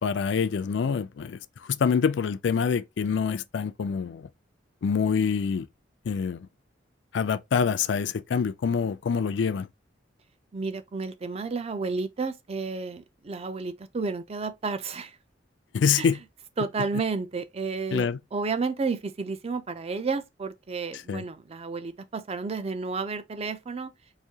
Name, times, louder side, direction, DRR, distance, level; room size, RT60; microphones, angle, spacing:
voice 1, 0.0-4.3 4.8-5.7 6.1-6.5 7.1-9.7 15.7-16.2 17.9-18.2 21.1-21.2, left 6 dB, 70° left, 0.4 m, -26 dB
voice 2, 10.5-15.2 16.0-16.1 16.6-23.9, right 4 dB, 35° right, 0.4 m, -31 dB
4.8 x 2.6 x 2.7 m
head